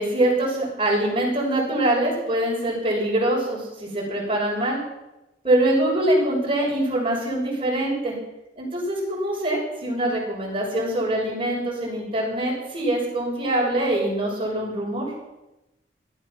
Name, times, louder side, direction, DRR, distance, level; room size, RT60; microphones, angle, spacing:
voice 1, 0.0-4.8 5.4-8.2 8.6-15.1, right 1 dB, 30° right, -4 dB, 6.2 m, -24 dB
17.5 x 12.5 x 6.0 m, 0.98 s
head